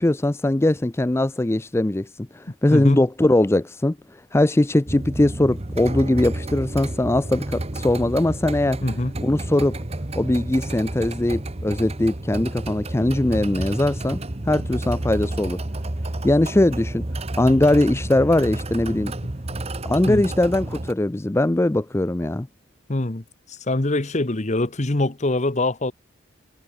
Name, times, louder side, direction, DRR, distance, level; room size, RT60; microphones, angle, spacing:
voice 1, 0.0-8.8 9.2-9.8 10.2-14.2 14.4-15.6 16.2-17.0 17.4-19.1 19.8-22.5, left 1 dB, 10° left, 0.4 m, -21 dB
voice 2, 2.7-3.0 8.8-9.1 20.1-20.2 22.9-25.9, left 2 dB, 35° left, 1.1 m, -24 dB
sound 1, 4.9-20.9, right 1 dB, 30° right, 1.1 m, -30 dB
head